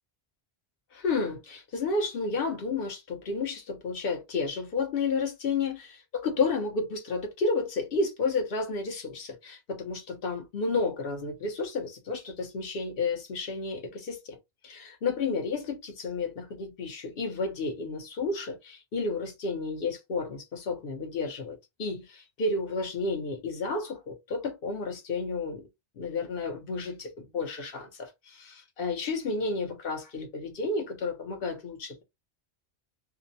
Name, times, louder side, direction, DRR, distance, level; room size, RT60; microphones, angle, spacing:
voice 1, 0.9-14.4 14.6-25.6 26.0-32.0, left 3 dB, 60° left, 0.8 m, -31 dB
2.6 x 2.0 x 2.6 m
omnidirectional pair, 1.1 m